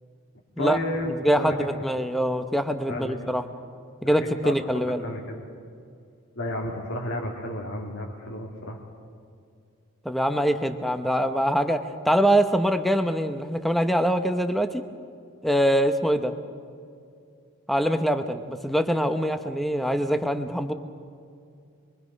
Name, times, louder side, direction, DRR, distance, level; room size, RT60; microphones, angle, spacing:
voice 1, 0.6-1.6 2.9-3.2 4.0-4.2 4.4-4.5 5.0-5.5 6.4-8.8, left 1 dB, 60° left, -2 dB, 2.2 m, -31 dB
voice 2, 1.2-3.4 4.0-5.0 10.0-14.8 15.4-16.3 17.7-20.7, equal, ahead, 7 dB, 0.9 m, -24 dB
27.0 x 23.0 x 5.4 m, 2.4 s
head